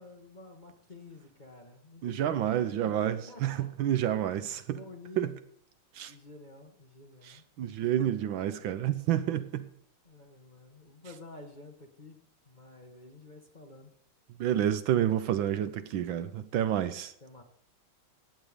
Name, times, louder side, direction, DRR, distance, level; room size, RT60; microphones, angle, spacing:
voice 1, 0.0-3.7 4.7-5.2 6.0-7.4 7.8-8.1 10.0-13.9 17.2-17.4, left 2 dB, 25° left, 1.2 m, -50 dB
voice 2, 2.0-4.8 5.2-5.3 5.9-6.1 7.2-9.7 14.4-17.1, right 11 dB, 75° right, 1.4 m, -29 dB
15.5 x 9.3 x 5.1 m
omnidirectional pair, 2.3 m